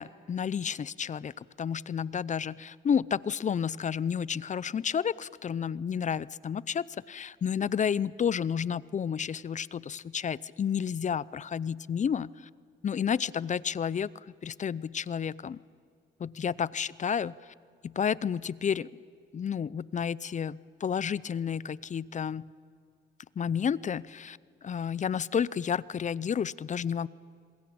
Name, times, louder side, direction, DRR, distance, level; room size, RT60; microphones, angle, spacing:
voice 1, 0.0-12.5 12.8-14.1 14.4-15.6 16.2-17.3 17.8-18.9 19.3-22.5 23.4-27.1, left 7 dB, 40° left, 21 dB, 0.6 m, -31 dB
27.0 x 21.0 x 8.7 m, 2.3 s
cardioid pair, 90°, 20 cm